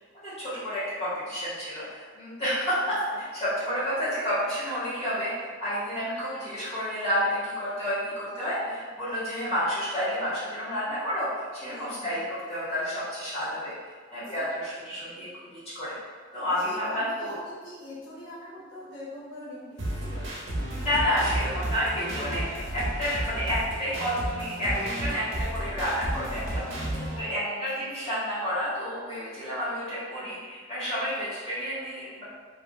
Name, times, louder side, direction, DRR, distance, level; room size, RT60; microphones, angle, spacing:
voice 1, 0.2-5.3 5.6-13.7 14.1-15.9 16.3-17.3 20.7-26.6 27.2-32.2, equal, 35° left, -12 dB, 1.5 m, -30 dB
voice 2, 11.6-12.2 14.1-14.5 16.4-20.3 26.9-28.3, left 1 dB, 80° left, -8 dB, 0.6 m, -43 dB
sound 1, 19.8-27.2, right 1 dB, 80° right, 0.7 m, -32 dB
2.7 x 2.7 x 2.6 m, 1.5 s
head